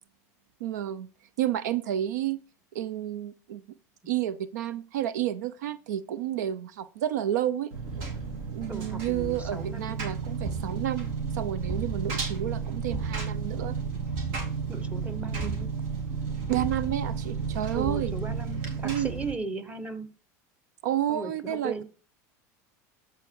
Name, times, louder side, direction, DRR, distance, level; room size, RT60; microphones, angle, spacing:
voice 1, 0.6-1.1 1.4-2.4 2.7-3.6 4.1-7.7 8.5-13.8 15.4-15.6 16.5-18.1 18.8-19.1 20.8-21.8, right 11 dB, 85° right, 0.6 m, -30 dB
Engine, 7.7-19.3, right 5 dB, 65° right, 3.1 m, -32 dB
voice 2, 8.7-10.0 14.7-15.7 17.8-20.1 21.1-21.8, right 3 dB, 15° right, 1.4 m, -37 dB
13.0 x 4.6 x 4.7 m
supercardioid pair, 105°, 9 cm